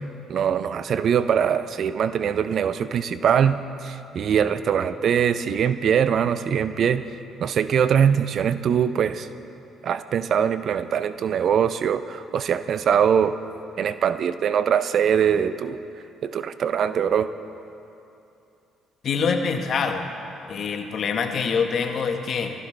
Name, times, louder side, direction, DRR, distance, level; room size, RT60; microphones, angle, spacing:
voice 1, 0.3-7.0 7.4-9.3 9.8-13.4 13.8-15.8 16.2-17.3, right 8 dB, 60° right, 13 dB, 0.5 m, -22 dB
voice 2, 19.0-20.1 20.5-22.5, left 5 dB, 55° left, 5 dB, 1.3 m, -25 dB
19.5 x 14.5 x 3.3 m, 2.7 s
hypercardioid pair, 55°, 0 cm